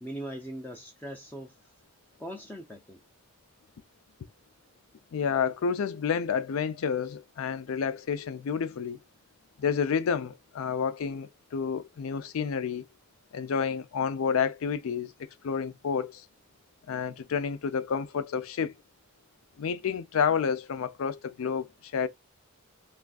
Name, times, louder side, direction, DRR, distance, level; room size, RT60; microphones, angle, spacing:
voice 1, 0.0-1.6 2.2-3.0, right 1 dB, 10° left, 0.3 m, -40 dB
voice 2, 5.1-9.0 9.6-12.9 13.3-16.3 16.9-18.8 19.6-22.1, left 6 dB, 85° left, 0.4 m, -30 dB
3.3 x 2.4 x 2.3 m
head